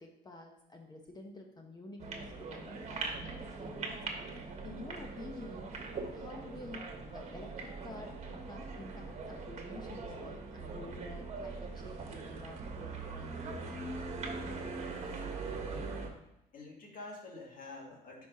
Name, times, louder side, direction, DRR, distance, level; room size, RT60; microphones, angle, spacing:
voice 1, 0.0-4.0 4.6-5.7 6.1-13.4, left 2 dB, 25° left, 2 dB, 0.8 m, -49 dB
sound 1, 2.0-16.1, right 3 dB, 40° right, 1.2 m, -41 dB
voice 2, 14.9-15.3 15.6-16.0 16.5-18.3, left 3 dB, 55° left, 0 dB, 2.1 m, -48 dB
10.5 x 4.9 x 2.8 m, 0.88 s
cardioid pair, 110°, 17 cm